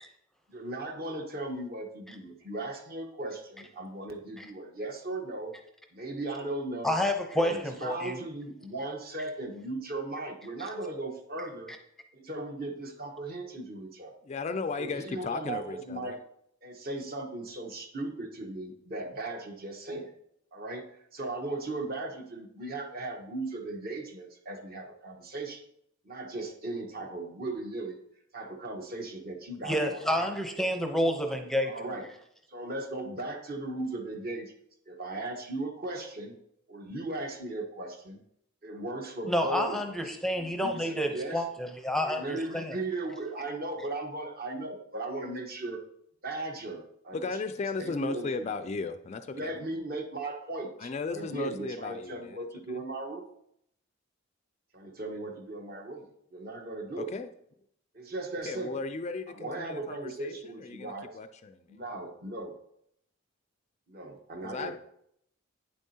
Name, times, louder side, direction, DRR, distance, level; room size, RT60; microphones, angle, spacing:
voice 1, 0.5-5.5 5.9-7.0 7.3-11.7 12.1-14.1 14.7-16.2 16.6-20.1 20.5-25.6 26.0-28.0 28.3-30.4 31.6-32.1 32.5-34.5 34.9-36.4 36.7-38.2 38.6-41.4 42.0-45.8 46.2-47.2 47.8-48.5 49.3-53.3 54.7-57.1 57.9-58.8 59.3-61.2 61.7-62.6 63.9-64.7, right 2 dB, 45° right, 3 dB, 1.1 m, -37 dB
voice 2, 6.8-8.2 29.6-31.7 39.3-42.8, equal, ahead, 4 dB, 0.6 m, -29 dB
voice 3, 14.2-16.2 47.1-49.5 50.8-52.4 52.7-52.8 57.0-57.3 58.5-61.6 64.4-64.7, left 4 dB, 30° left, 9 dB, 0.3 m, -36 dB
9.2 x 7.2 x 2.8 m, 0.72 s
head